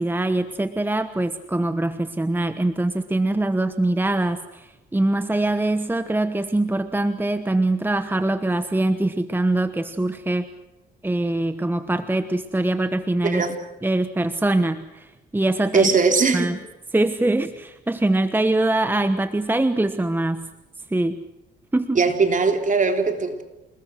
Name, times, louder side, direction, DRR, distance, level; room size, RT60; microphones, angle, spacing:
voice 1, 0.0-10.5 11.0-13.4 13.8-15.1 15.3-15.9 16.3-16.6 16.9-20.5 20.9-21.2 21.7-22.0, right 2 dB, 10° right, 1.2 m, -23 dB
voice 2, 15.7-16.5 22.0-23.4, right 4 dB, 40° right, 3.5 m, -19 dB
28.5 x 20.5 x 6.4 m
cardioid pair, 90°, 20 cm